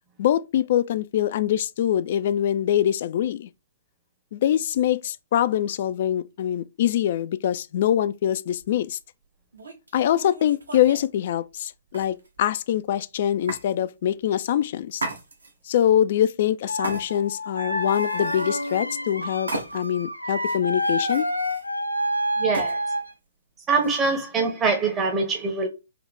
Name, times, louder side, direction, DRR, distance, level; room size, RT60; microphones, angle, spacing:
voice 1, 0.2-3.5 4.3-9.0 9.9-15.0 15.7-21.3, left 11 dB, 45° left, 0.3 m, -24 dB
sound 1, 8.6-8.8 9.5-11.1 11.9-12.5 13.5-13.7 14.9-15.7 16.8-17.4 17.8-18.9 19.5-20.0 20.4-21.7 22.5-22.8 23.8-24.2, right 2 dB, 70° right, 1.1 m, -36 dB
sound 2, 16.7-23.1, equal, 90° left, 0.6 m, -28 dB
voice 2, 22.4-22.8 23.7-25.7, right 4 dB, 15° right, 0.8 m, -23 dB
3.8 x 2.8 x 3.4 m
figure-of-eight pair, 120°, 0 cm